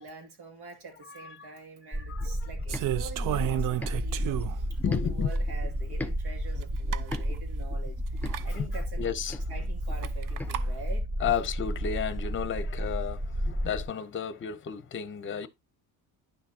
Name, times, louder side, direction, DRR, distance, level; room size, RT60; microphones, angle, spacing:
voice 1, 0.0-9.2 9.5-11.1, right 3 dB, 75° right, 2.4 m, -46 dB
voice 2, 1.1-1.5 1.9-2.5 4.8-5.3 8.5-8.7 9.0-9.4 11.2-15.5, left 8 dB, 30° left, 0.7 m, -32 dB
sound 1, 1.9-13.8, equal, 25° right, 1.2 m, -32 dB
sound 2, 2.2-6.2 6.5-10.5, left 2 dB, 5° left, 0.5 m, -41 dB
sound 3, 2.7-4.7 5.3-5.4 6.6-6.7 6.9-7.2 8.2-8.5 10.0-10.7, right 13 dB, 55° right, 0.6 m, -32 dB
10.5 x 5.9 x 2.8 m
cardioid pair, 140°, 38 cm